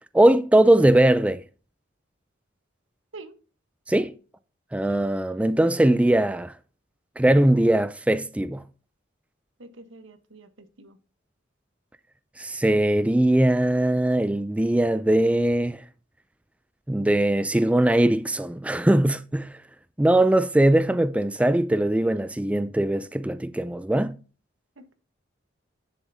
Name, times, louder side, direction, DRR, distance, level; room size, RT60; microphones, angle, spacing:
voice 1, 0.1-1.4 3.9-4.2 4.7-6.5 7.2-8.6 12.4-15.8 16.9-19.6 20.0-24.1, right 1 dB, 5° right, 0.3 m, -20 dB
voice 2, 9.6-11.0 24.8-24.9, right 3 dB, 85° right, 1.2 m, -46 dB
10.0 x 7.3 x 2.7 m
head